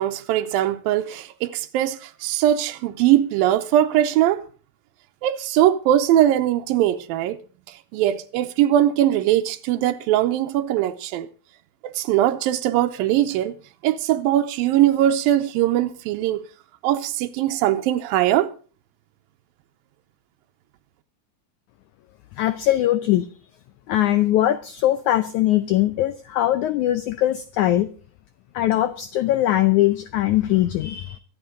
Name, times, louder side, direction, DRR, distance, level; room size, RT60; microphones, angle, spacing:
voice 1, 0.0-4.4 5.2-7.4 7.7-11.3 11.8-13.5 13.8-16.5 16.8-18.5, right 12 dB, 80° right, 2.5 m, -21 dB
voice 2, 22.3-23.3 23.9-27.9 28.5-31.2, left 14 dB, 80° left, 1.7 m, -21 dB
24.5 x 8.7 x 3.8 m
omnidirectional pair, 4.3 m